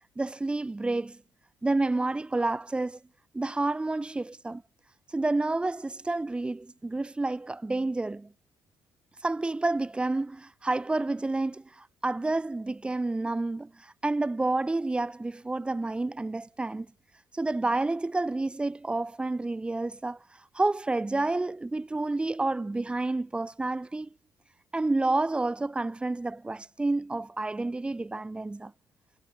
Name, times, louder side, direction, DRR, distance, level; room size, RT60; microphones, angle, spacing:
voice 1, 0.2-1.2 1.6-3.0 3.3-4.6 5.1-8.3 9.2-16.9 17.3-20.2 20.5-24.1 24.7-28.7, right 2 dB, 10° right, 1.0 m, -29 dB
cardioid pair, 135°, 8 cm